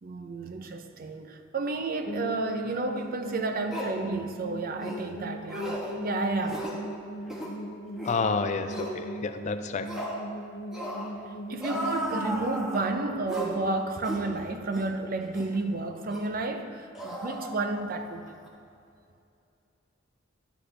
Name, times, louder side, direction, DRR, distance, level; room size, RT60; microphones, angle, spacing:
voice 1, 0.0-6.7 11.5-18.3, right 3 dB, 45° right, 0.6 m, -31 dB
sound 1, 2.1-14.9, right 1 dB, 85° left, 1.1 m, -40 dB
sound 2, 3.0-3.1 3.7-4.0 4.8-5.0 5.5-5.9 6.4-6.8 7.2-7.5 8.0-8.2 8.7-8.9 9.9-10.2 10.7-11.1 11.6-12.9 13.3-13.6 14.0-14.3 14.7-14.9 15.3-15.5 16.1-16.3 16.9-18.0 18.3-18.5, equal, 5° right, 1.2 m, -35 dB
voice 2, 8.0-9.9, left 4 dB, 35° left, 0.4 m, -29 dB
11.0 x 7.9 x 3.3 m
head